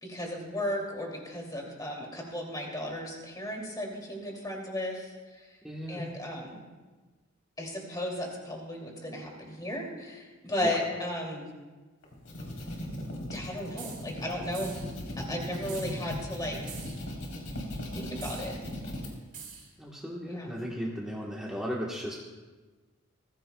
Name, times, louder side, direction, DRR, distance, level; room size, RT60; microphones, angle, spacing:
voice 1, 0.0-5.6 5.9-6.6 7.6-11.5 13.3-14.8 15.2-16.8 17.9-18.5 20.3-20.5, left 1 dB, 20° left, 0 dB, 2.7 m, -35 dB
voice 2, 5.6-6.0 10.6-10.8 19.8-22.1, equal, 5° right, -4 dB, 1.3 m, -36 dB
sound 1, 12.0-19.1, left 1 dB, 80° left, 3.7 m, -38 dB
sound 2, 13.8-14.1 14.5-14.9 15.7-16.0 16.7-17.0 18.2-18.5 19.3-19.7, right 6 dB, 40° right, 4.0 m, -44 dB
21.0 x 15.5 x 2.3 m, 1.3 s
head